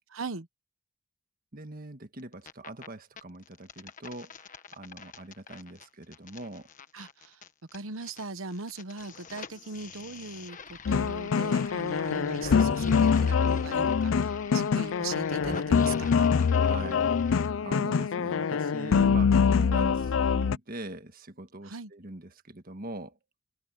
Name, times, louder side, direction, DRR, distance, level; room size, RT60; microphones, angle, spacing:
voice 1, 0.1-0.5 6.9-7.4 7.7-16.3 21.6-21.9, right 3 dB, 90° right, 1.1 m, -39 dB
voice 2, 1.5-6.7 16.6-23.2, right 2 dB, 45° right, 1.6 m, -43 dB
sound 1, 2.2-2.9 3.2-8.2 8.5-17.5, left 4 dB, 40° left, 1.4 m, -44 dB
sound 2, 10.9-20.6, left 6 dB, 75° left, 0.4 m, -25 dB
head